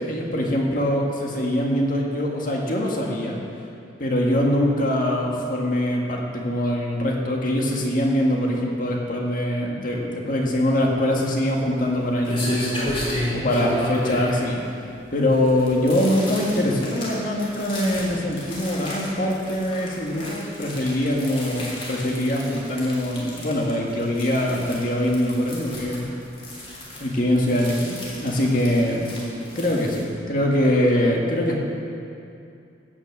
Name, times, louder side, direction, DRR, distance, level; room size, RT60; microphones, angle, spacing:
voice 1, 0.0-3.4 4.0-14.6 15.1-26.1 27.0-29.0 29.6-31.6, left 1 dB, 45° left, -1 dB, 1.8 m, -23 dB
sound 1, 11.5-30.0, left 1 dB, 30° left, 3.2 m, -34 dB
16.0 x 6.0 x 7.7 m, 2.6 s
head